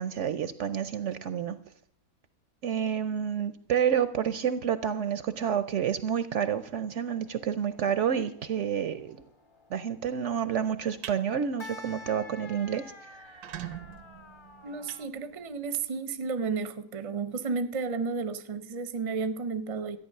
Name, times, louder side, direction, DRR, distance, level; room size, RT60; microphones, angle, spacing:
voice 1, 0.0-1.6 2.6-9.2 9.7-13.4, right 8 dB, 60° right, 0.8 m, -29 dB
sound 1, 6.9-15.1, left 3 dB, 25° left, 0.8 m, -50 dB
sound 2, 10.7-11.2 11.6-11.9 12.2-12.3 12.6-12.7 13.2-15.7, right 11 dB, 85° right, 1.3 m, -43 dB
voice 2, 14.6-20.0, right 4 dB, 35° right, 0.6 m, -32 dB
13.5 x 9.1 x 6.5 m
omnidirectional pair, 1.6 m